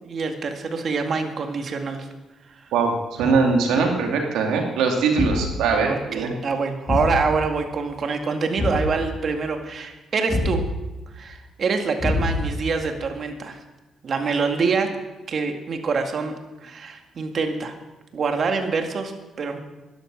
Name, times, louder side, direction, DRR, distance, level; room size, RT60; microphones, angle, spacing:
voice 1, 0.0-2.1 5.3-5.4 5.9-10.6 11.1-13.6 14.0-14.9 15.3-16.3 16.6-17.7 18.1-19.6, right 4 dB, 50° right, 5 dB, 1.9 m, -25 dB
voice 2, 3.2-6.3, right 4 dB, 90° right, 2 dB, 2.7 m, -21 dB
Thump thud, 5.2-5.6 6.9-7.2 8.6-8.9 10.3-10.7 12.0-12.6, left 2 dB, 30° left, 4.4 m, -24 dB
12.5 x 11.0 x 6.3 m, 1.1 s
cardioid pair, 90°, 0 cm